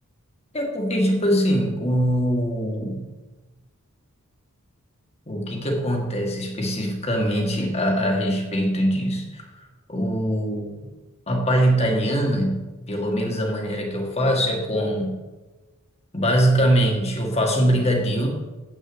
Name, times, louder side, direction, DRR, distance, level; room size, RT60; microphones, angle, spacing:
voice 1, 0.5-3.1 5.3-9.5 9.9-10.7 11.3-15.2 16.1-18.3, equal, 30° left, 1 dB, 2.0 m, -22 dB
7.8 x 6.5 x 8.2 m, 1.2 s
head